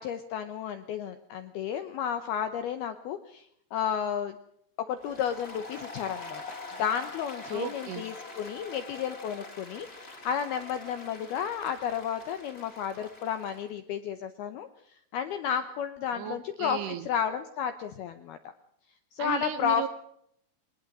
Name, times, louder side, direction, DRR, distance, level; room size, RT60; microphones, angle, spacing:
voice 1, 0.0-4.4 4.8-14.7 15.1-18.5 19.1-19.8, left 8 dB, 75° left, 9 dB, 2.3 m, -32 dB
Applause, 5.0-13.7, left 3 dB, 15° left, 2.4 m, -44 dB
voice 2, 7.5-8.0 16.1-17.1 19.2-19.9, right 11 dB, 75° right, 12 dB, 2.6 m, -35 dB
21.5 x 20.0 x 6.2 m, 0.72 s
omnidirectional pair, 5.7 m